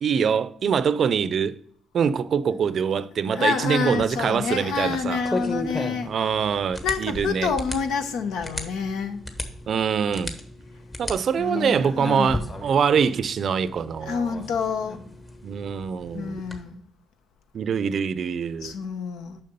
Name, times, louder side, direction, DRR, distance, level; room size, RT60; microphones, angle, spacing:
voice 1, 0.0-1.6 1.9-5.2 6.1-7.5 9.7-10.4 11.0-14.5 15.4-16.4 17.5-18.7, right 7 dB, 60° right, 0.5 m, -24 dB
voice 2, 3.3-6.1 6.8-9.2 11.4-12.4 14.1-15.0 16.1-16.8 18.6-19.4, left 5 dB, 85° left, 0.9 m, -28 dB
sound 1, 3.8-16.6, left 1 dB, 25° left, 1.3 m, -36 dB
6.7 x 5.9 x 5.3 m
cardioid pair, 90°, 0 cm